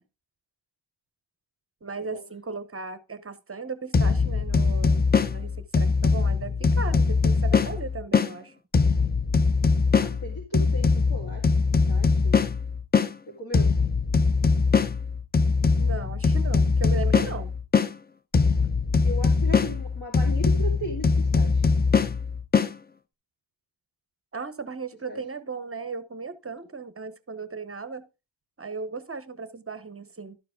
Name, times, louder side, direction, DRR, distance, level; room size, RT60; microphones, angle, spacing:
voice 1, 1.8-8.5 15.8-17.5 24.3-28.1 28.6-30.4, right 4 dB, 30° right, 0.8 m, -36 dB
sound 1, 3.9-8.3 8.7-13.1 13.5-17.9 18.3-22.7, left 4 dB, 20° left, 0.5 m, -22 dB
voice 2, 9.9-11.5 11.9-12.4 13.4-13.7 19.0-21.7 25.1-25.2, right 1 dB, 55° left, 2.6 m, -36 dB
12.0 x 4.7 x 4.9 m
wide cardioid pair, 110°, 45 cm